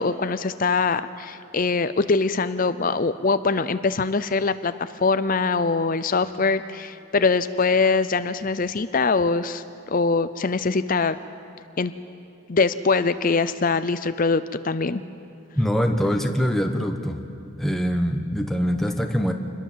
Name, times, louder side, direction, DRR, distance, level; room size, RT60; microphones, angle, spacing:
voice 1, 0.0-11.2 11.8-11.9 12.5-15.0, left 4 dB, 40° left, 13 dB, 0.5 m, -23 dB
voice 2, 15.5-17.2 17.6-19.3, equal, ahead, 4 dB, 1.2 m, -23 dB
27.5 x 21.5 x 7.5 m, 2.5 s
head